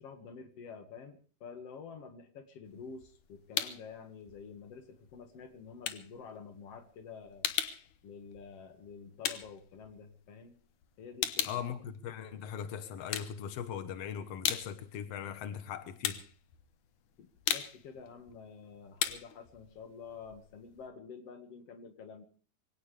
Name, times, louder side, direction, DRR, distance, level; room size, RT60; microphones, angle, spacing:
voice 1, 0.0-7.5 8.0-10.5 11.0-11.6 17.5-22.2, left 5 dB, 50° left, 2.2 m, -49 dB
sound 1, 2.7-3.9 4.3-10.5 10.8-12.6 13.0-13.9 14.2-20.9, left 10 dB, 65° left, 2.1 m, -37 dB
voice 2, 11.4-16.2 17.2-17.3, left 8 dB, 85° left, 1.3 m, -40 dB
23.5 x 17.5 x 3.4 m
omnidirectional pair, 4.7 m